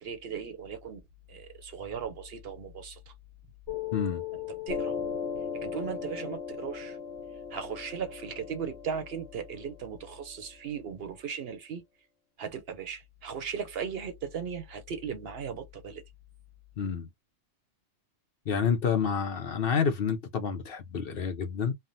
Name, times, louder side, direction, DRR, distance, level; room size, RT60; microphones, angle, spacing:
voice 1, 0.0-1.0 1.3-3.0 4.7-5.0 5.6-7.0 7.5-11.8 12.4-16.0, right 7 dB, 60° right, 0.8 m, -37 dB
Piano, 3.7-10.7, left 7 dB, 80° left, 1.1 m, -37 dB
voice 2, 3.9-4.2 16.8-17.1 18.5-21.7, left 6 dB, 55° left, 0.8 m, -28 dB
3.3 x 2.1 x 2.6 m
omnidirectional pair, 1.2 m